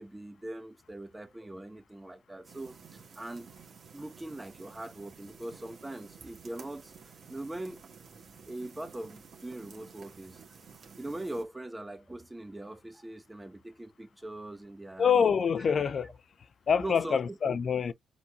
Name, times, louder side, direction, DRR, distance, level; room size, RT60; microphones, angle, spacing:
voice 1, 0.0-3.5 3.9-6.9 7.3-7.8 8.5-10.4 11.0-15.3 16.8-17.6, right 1 dB, 15° right, 1.2 m, -41 dB
sound 1, 2.4-11.4, right 6 dB, 55° right, 2.0 m, -53 dB
voice 2, 15.0-16.1 16.7-17.9, left 7 dB, 50° left, 0.5 m, -26 dB
4.4 x 4.1 x 2.5 m
supercardioid pair, 60°, 0 cm